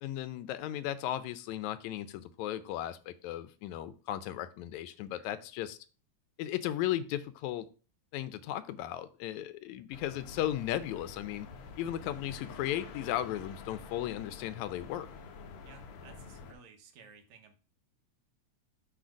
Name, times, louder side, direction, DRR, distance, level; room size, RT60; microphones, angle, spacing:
voice 1, 0.0-5.8 6.4-7.7 8.1-11.5 11.8-15.1, left 12 dB, 80° left, 13 dB, 1.9 m, -36 dB
voice 2, 5.2-5.5 15.6-17.6, right 5 dB, 80° right, 6 dB, 2.3 m, -56 dB
sound 1, 9.9-16.5, left 5 dB, 65° left, 1.5 m, -48 dB
7.7 x 3.5 x 5.0 m, 0.36 s
omnidirectional pair, 3.3 m